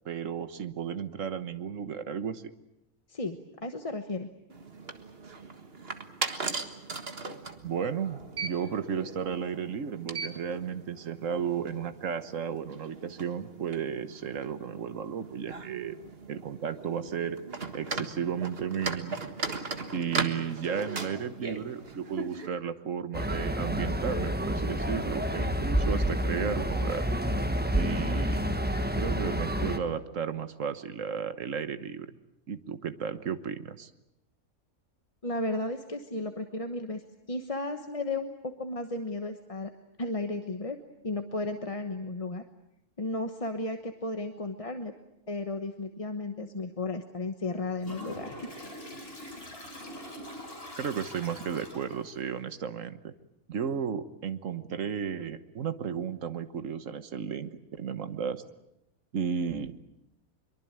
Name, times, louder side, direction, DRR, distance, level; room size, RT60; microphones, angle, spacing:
voice 1, 0.0-2.5 7.6-16.0 16.3-17.4 17.7-19.2 19.9-27.1 27.7-28.5 29.0-32.1 32.5-33.9 50.8-53.1 53.5-58.4 59.1-59.8, right 7 dB, 60° right, 11 dB, 1.6 m, -34 dB
voice 2, 3.1-4.3 35.2-39.7 40.0-40.8 41.0-42.4 43.0-44.9 45.3-48.5, left 2 dB, 25° left, 6 dB, 1.1 m, -34 dB
sound 1, 4.5-22.5, right 4 dB, 45° right, 1.8 m, -39 dB
sound 2, 23.1-29.8, equal, 5° right, 1.2 m, -29 dB
Toilet flush, 47.8-52.2, equal, 40° left, 5.0 m, -43 dB
23.5 x 23.5 x 8.9 m, 0.85 s
omnidirectional pair, 1.5 m